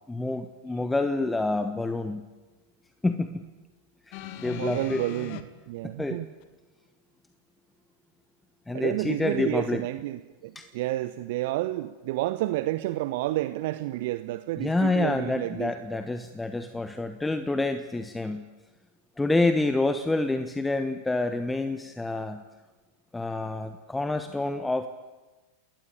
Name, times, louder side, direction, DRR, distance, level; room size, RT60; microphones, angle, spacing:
voice 1, 0.1-2.2 3.0-3.4 4.1-5.0 5.8-6.2 8.7-9.8 10.5-10.7 14.6-18.4 19.2-22.4 23.1-24.9, left 2 dB, 10° left, 9 dB, 1.3 m, -28 dB
sound 1, 4.1-5.4 6.4-6.5, left 11 dB, 45° left, 2.1 m, -39 dB
voice 2, 4.6-6.3 8.7-15.7, right 16 dB, 50° right, 13 dB, 0.9 m, -30 dB
28.5 x 20.0 x 8.8 m, 1.2 s
figure-of-eight pair, 90°, 0 cm